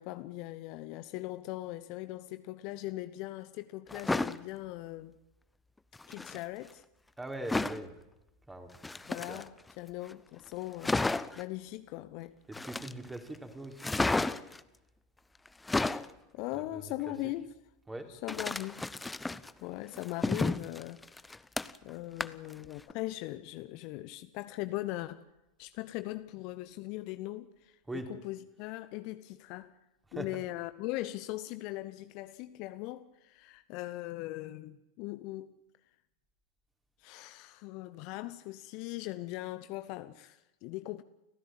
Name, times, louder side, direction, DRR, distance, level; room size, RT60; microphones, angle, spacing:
voice 1, 0.0-5.1 6.1-6.8 9.1-11.0 11.4-12.4 16.3-17.5 18.1-18.8 19.6-21.0 21.8-25.2 25.6-29.7 30.1-35.5 37.0-41.0, left 17 dB, 45° left, 1.0 m, -40 dB
sound 1, 3.9-4.4 5.9-6.4 7.5-7.8 8.7-9.7 10.1-10.2 10.5-10.6 10.8-11.4 12.5-13.2 13.8-14.6 15.5-16.1 18.3-19.5 19.9-21.9 22.2-22.5 22.9-23.0, left 2 dB, 10° left, 0.8 m, -32 dB
voice 2, 7.2-7.9 8.5-8.7 9.3-9.4 12.5-14.2 16.5-17.3 17.9-18.1 27.9-28.1 30.1-30.4, right 1 dB, 10° right, 3.7 m, -42 dB
29.5 x 15.0 x 9.1 m
figure-of-eight pair, 90°, 0 cm